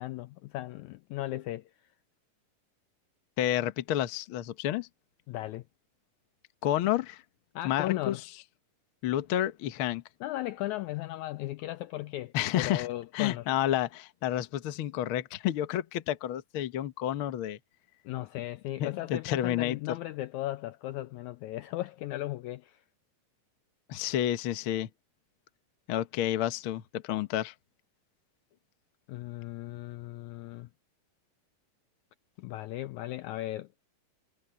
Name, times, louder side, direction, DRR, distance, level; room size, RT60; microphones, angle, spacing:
voice 1, 0.0-1.7 5.3-5.6 7.5-8.2 10.2-13.5 18.0-22.8 29.1-30.7 32.4-33.7, left 16 dB, 90° left, 1.7 m, -36 dB
voice 2, 3.4-4.9 6.6-7.2 7.6-8.1 9.0-10.0 12.3-12.9 13.1-17.6 18.8-19.8 23.9-24.9 25.9-27.5, left 12 dB, 70° left, 1.2 m, -30 dB
omnidirectional pair, 3.9 m